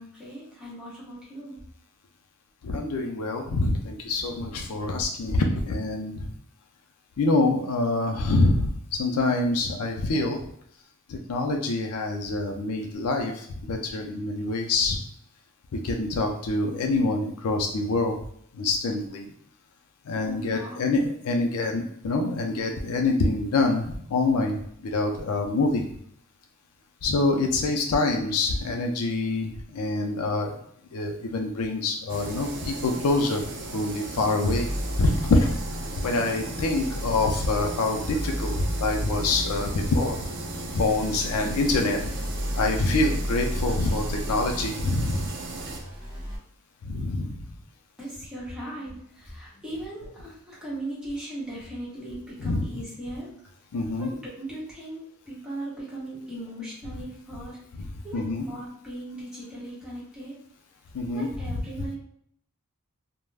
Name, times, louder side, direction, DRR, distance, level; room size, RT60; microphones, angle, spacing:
voice 1, 0.0-1.6 20.2-20.9 48.0-53.3 54.0-57.6 58.0-60.4 61.1-62.0, right 1 dB, 5° right, -8 dB, 1.1 m, -38 dB
voice 2, 2.6-6.3 7.2-10.4 11.1-15.0 15.7-18.2 18.5-19.3 20.1-24.6 24.9-25.8 27.0-30.6 30.9-33.4 33.7-34.7 35.0-35.5 36.0-40.2 40.7-42.1 42.6-45.2 46.8-47.4 52.4-52.7 53.7-54.1 57.8-58.5 60.9-61.6, left 2 dB, 80° left, 3 dB, 0.4 m, -26 dB
sound 1, 32.1-45.8, right 2 dB, 55° right, 0.5 m, -36 dB
sound 2, 34.4-46.4, equal, 25° right, 0.8 m, -33 dB
2.3 x 2.1 x 3.3 m, 0.68 s
head